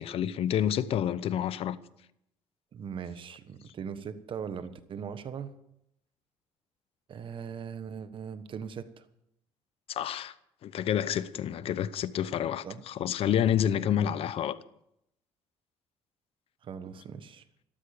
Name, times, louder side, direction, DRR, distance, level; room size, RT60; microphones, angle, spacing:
voice 1, 0.0-1.8 9.9-10.3 10.6-14.6, left 10 dB, 60° left, 0.8 m, -29 dB
voice 2, 2.7-5.5 7.1-9.1 12.6-12.8 16.6-17.4, right 7 dB, 50° right, 1.3 m, -40 dB
13.0 x 13.0 x 7.2 m
cardioid pair, 100°, 11 cm